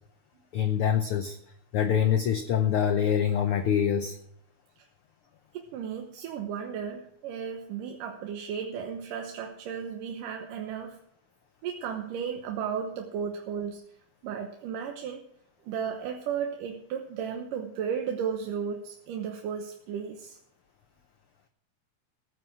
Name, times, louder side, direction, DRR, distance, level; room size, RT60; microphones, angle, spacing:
voice 1, 0.5-1.4 1.7-4.2, left 8 dB, 90° left, 8 dB, 1.2 m, -25 dB
voice 2, 5.5-11.0 11.6-13.8 14.2-15.2 15.6-20.4, right 7 dB, 90° right, 3 dB, 2.7 m, -34 dB
16.0 x 9.4 x 6.1 m, 0.70 s
omnidirectional pair, 3.7 m